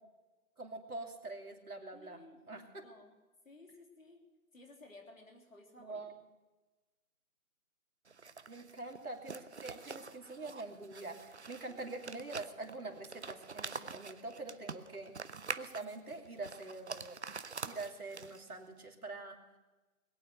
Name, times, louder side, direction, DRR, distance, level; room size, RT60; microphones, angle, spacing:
voice 1, 0.6-2.9 5.8-6.2 8.5-15.1 15.6-17.2 17.6-19.6, right 2 dB, 80° right, 2 dB, 2.8 m, -45 dB
voice 2, 1.9-3.2 3.4-4.2 4.5-6.2 11.7-12.0, left 2 dB, 65° left, 2 dB, 3.2 m, -57 dB
sound 1, 8.1-18.6, right 4 dB, 50° right, 0.6 m, -46 dB
20.5 x 9.1 x 6.6 m, 1.2 s
figure-of-eight pair, 170°, 44 cm